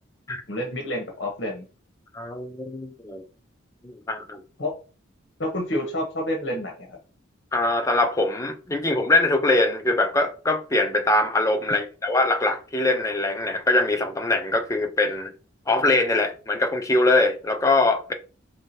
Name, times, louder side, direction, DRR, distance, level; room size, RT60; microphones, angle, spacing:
voice 1, 0.5-1.6 4.6-4.7 5.4-7.0, left 1 dB, 60° left, 1.0 m, -28 dB
voice 2, 2.1-3.2 3.8-4.4 7.5-15.3 15.7-18.1, left 2 dB, 15° left, 0.5 m, -22 dB
4.8 x 3.2 x 2.8 m
head